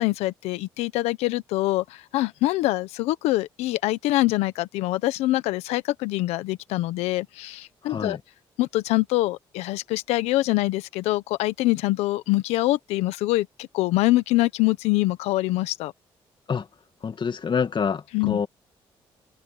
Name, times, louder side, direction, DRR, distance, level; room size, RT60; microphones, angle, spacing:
voice 1, 0.0-8.2 8.6-15.9 18.1-18.4, left 18 dB, 90° left, 1.2 m, -24 dB
voice 2, 7.8-8.2 16.5-16.7 17.0-18.5, left 6 dB, 50° left, 2.3 m, -27 dB
supercardioid pair, 60°, 11 cm